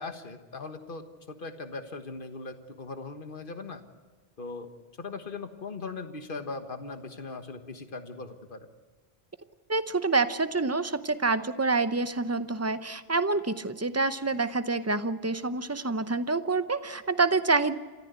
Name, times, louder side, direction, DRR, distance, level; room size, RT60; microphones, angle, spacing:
voice 1, 0.0-3.8 4.4-4.7 5.0-8.6, left 3 dB, 55° left, 8 dB, 1.6 m, -39 dB
voice 2, 9.7-17.8, right 3 dB, 15° right, 12 dB, 0.7 m, -27 dB
28.0 x 14.0 x 8.2 m, 1.4 s
omnidirectional pair, 1.1 m